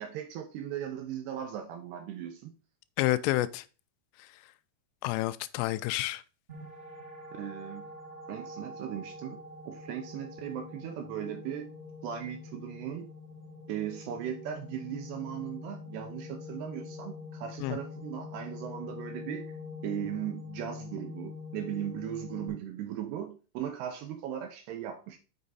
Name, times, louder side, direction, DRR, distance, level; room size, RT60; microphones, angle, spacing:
voice 1, 0.0-2.5 7.3-7.9 8.3-9.4 9.7-11.7 12.0-13.1 13.7-19.5 19.8-25.2, right 10 dB, 80° right, 2.6 m, -38 dB
voice 2, 3.0-3.6 5.0-6.2 17.6-17.8, left 16 dB, 90° left, 3.1 m, -29 dB
sound 1, 6.5-22.5, left 3 dB, 35° right, 1.0 m, -44 dB
7.0 x 6.3 x 4.1 m
omnidirectional pair, 5.6 m